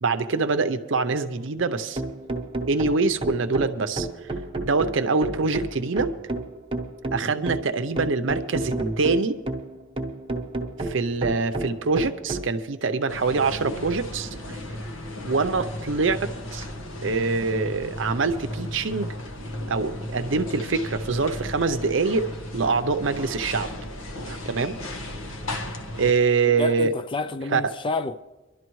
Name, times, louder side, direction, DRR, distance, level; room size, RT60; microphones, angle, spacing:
voice 1, 0.0-2.0 2.7-4.1 4.6-6.1 7.1-9.4 10.8-14.3 15.2-16.7 17.0-19.1 19.7-22.3 22.5-23.7 24.3-24.8 26.0-26.9 27.5-27.7, right 4 dB, 65° right, 0.7 m, -24 dB
sound 1, 1.6-12.5, right 2 dB, 25° right, 1.0 m, -31 dB
sound 2, 13.1-26.1, left 1 dB, 90° left, 1.2 m, -35 dB
voice 2, 26.6-28.2, left 3 dB, 25° left, 0.3 m, -29 dB
24.0 x 12.0 x 3.1 m
head